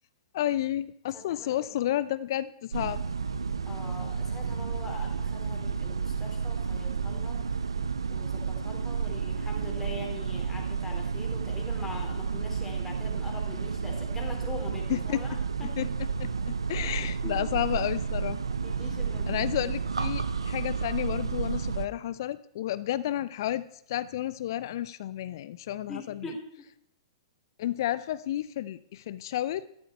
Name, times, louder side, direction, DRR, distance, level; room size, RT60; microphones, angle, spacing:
voice 1, 0.3-3.0 14.9-15.2 15.8-15.9 16.2-18.4 19.3-26.4 27.6-29.7, left 12 dB, 50° left, 16 dB, 0.6 m, -31 dB
voice 2, 1.1-1.7 3.7-7.6 8.1-15.8 16.8-17.5 18.6-19.5 25.9-26.7, left 2 dB, 10° left, 0 dB, 3.7 m, -43 dB
sound 1, 2.7-21.9, right 5 dB, 75° right, 0.7 m, -31 dB
13.0 x 12.0 x 4.5 m, 0.71 s
figure-of-eight pair, 110°, 3 cm